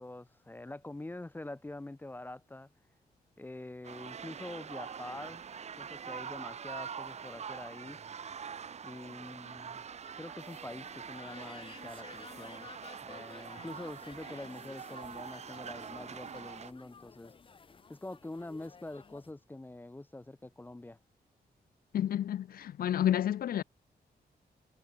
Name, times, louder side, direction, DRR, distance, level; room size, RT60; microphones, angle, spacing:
voice 1, 0.0-2.7 3.4-5.4 5.8-8.0 8.8-9.8 10.2-12.7 13.0-17.3 17.9-21.0, left 2 dB, 10° left, 0.7 m, -45 dB
sound 1, 3.8-16.7, right 7 dB, 40° right, 0.7 m, -44 dB
sound 2, 10.4-19.3, left 5 dB, 30° left, 1.0 m, -54 dB
voice 2, 21.9-23.6, left 11 dB, 65° left, 0.4 m, -30 dB
wide cardioid pair, 165°, 17 cm